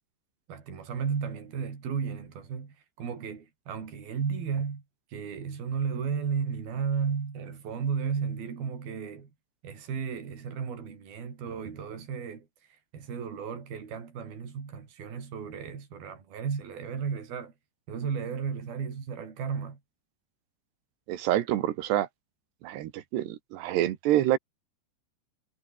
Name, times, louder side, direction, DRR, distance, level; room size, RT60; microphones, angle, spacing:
voice 1, 0.5-4.8 5.1-9.3 9.6-12.5 12.9-17.5 17.9-19.8, right 6 dB, 60° right, 6.2 m, -34 dB
voice 2, 21.1-22.1 22.6-24.4, right 13 dB, 80° right, 3.5 m, -27 dB
omnidirectional pair, 4.8 m